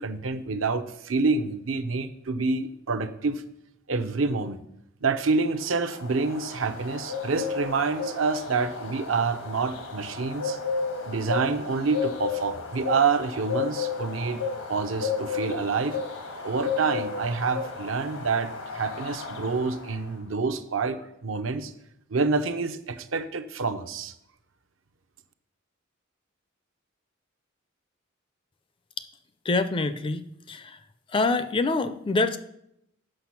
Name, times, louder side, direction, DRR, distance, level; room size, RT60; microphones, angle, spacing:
voice 1, 0.0-3.4 3.9-4.6 5.0-10.6 11.0-14.4 14.7-16.0 16.4-21.7 22.1-24.1, right 4 dB, 70° right, 8 dB, 0.7 m, -27 dB
sound 1, 5.4-20.1, left 5 dB, 85° left, 1.5 m, -33 dB
voice 2, 29.4-30.8 31.1-32.4, left 3 dB, 25° left, 12 dB, 0.4 m, -26 dB
7.8 x 6.0 x 5.8 m, 0.78 s
head